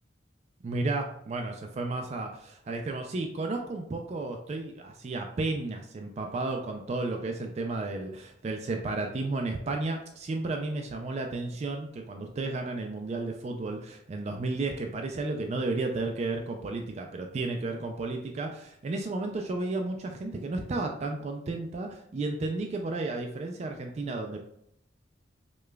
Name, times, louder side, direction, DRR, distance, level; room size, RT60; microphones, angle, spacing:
voice 1, 0.6-24.4, right 2 dB, 35° right, 3 dB, 0.3 m, -33 dB
4.9 x 2.2 x 2.2 m, 0.74 s
head